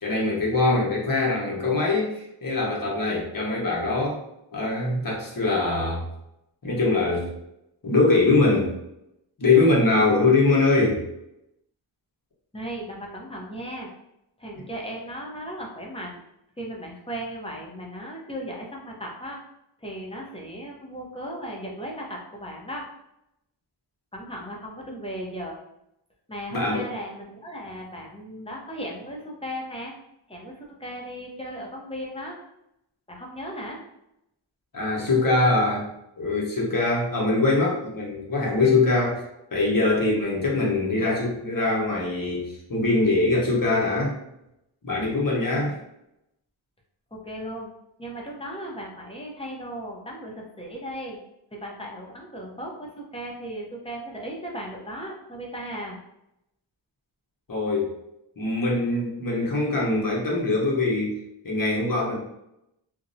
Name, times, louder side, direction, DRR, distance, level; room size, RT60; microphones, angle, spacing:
voice 1, 0.0-4.2 4.5-6.0 6.6-7.3 7.8-8.7 9.4-11.0 26.5-26.8 34.7-35.9 36.2-39.2 39.5-44.1 44.8-45.8 57.5-57.9 58.4-61.2 61.4-62.2, left 3 dB, 45° left, -3 dB, 0.9 m, -22 dB
voice 2, 12.5-13.9 14.4-16.2 16.6-19.4 19.8-22.9 24.1-25.6 26.3-29.9 30.3-32.4 33.1-33.8 45.4-45.7 47.1-47.7 48.0-51.2 51.5-56.0, equal, 15° left, -2 dB, 0.6 m, -36 dB
2.5 x 2.1 x 2.6 m, 0.83 s
wide cardioid pair, 45°, 46 cm